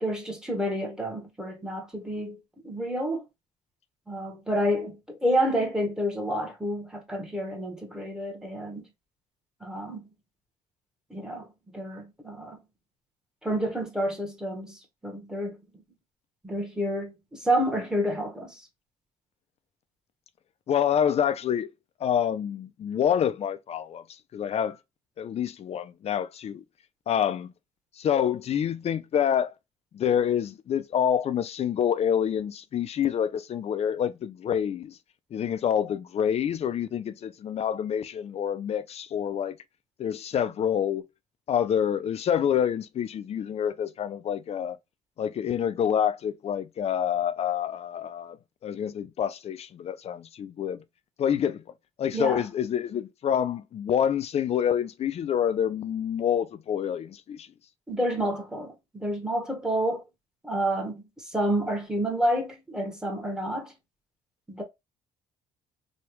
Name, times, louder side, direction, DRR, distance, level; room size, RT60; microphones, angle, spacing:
voice 1, 0.0-2.4 2.6-3.2 4.1-8.9 9.6-10.0 11.1-11.5 11.7-12.6 13.4-15.6 16.4-18.6 52.1-52.4 57.9-60.0 60.4-63.7 64.5-64.6, equal, 5° right, 1.0 m, -29 dB
voice 2, 20.7-21.7 22.0-24.0 24.3-24.8 25.2-26.6 27.1-27.5 28.0-29.5 29.9-35.0 35.3-39.6 40.0-41.0 41.5-44.8 45.2-48.4 48.6-50.8 51.2-51.6 52.0-57.5, left 9 dB, 45° left, 0.4 m, -27 dB
3.1 x 2.3 x 3.0 m
cardioid pair, 100°, 15 cm